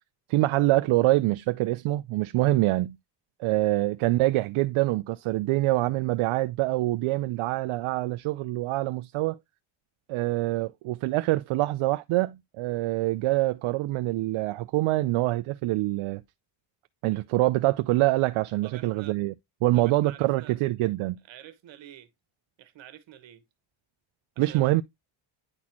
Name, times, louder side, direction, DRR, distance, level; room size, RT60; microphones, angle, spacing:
voice 1, 0.3-3.0 3.4-9.4 10.1-16.2 17.0-19.3 19.6-21.2 24.4-24.8, right 18 dB, 80° right, 0.5 m, -25 dB
voice 2, 18.6-19.2 19.7-20.5 21.3-22.1 22.6-23.4 24.3-24.8, right 11 dB, 65° right, 1.3 m, -48 dB
9.8 x 4.1 x 2.9 m
cardioid pair, 150°, 49 cm